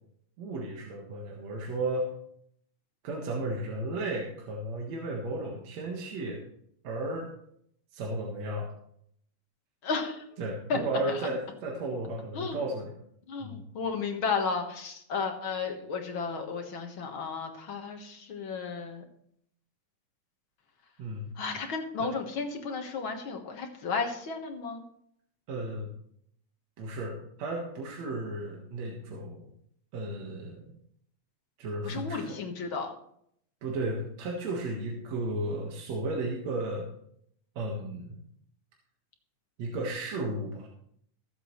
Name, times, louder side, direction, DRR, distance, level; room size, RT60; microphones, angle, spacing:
voice 1, 0.4-2.1 3.0-6.4 6.8-7.3 7.9-8.7 10.4-12.9 13.4-13.6 21.0-21.3 22.0-22.1 25.5-25.9 26.8-29.4 29.9-30.6 31.6-32.4 33.6-36.9 37.6-38.2 39.6-40.7, right 2 dB, 65° right, -1 dB, 2.7 m, -34 dB
voice 2, 9.8-10.2 10.7-10.8 12.3-12.6 13.3-19.0 21.4-24.8 31.8-32.9, left 5 dB, 50° left, 3 dB, 1.9 m, -33 dB
21.5 x 7.7 x 3.2 m, 0.69 s
omnidirectional pair, 3.5 m